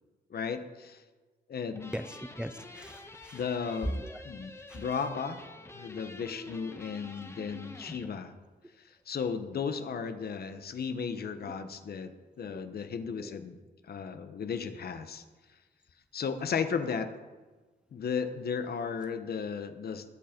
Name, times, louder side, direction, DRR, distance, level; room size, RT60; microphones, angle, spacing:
voice 1, 0.3-1.0 1.5-1.9 3.3-5.4 5.7-8.3 8.9-12.1 12.4-13.6 13.9-15.2 16.1-17.1 17.9-20.0, left 6 dB, 60° left, 9 dB, 1.2 m, -35 dB
sound 1, 1.7-8.1, left 2 dB, 15° left, 1.3 m, -48 dB
voice 2, 1.9-3.4 4.0-4.2 4.7-4.8 11.5-11.6 13.2-13.3, equal, 5° right, 10 dB, 0.6 m, -41 dB
20.0 x 8.6 x 5.3 m, 1.3 s
wide cardioid pair, 130°, 18 cm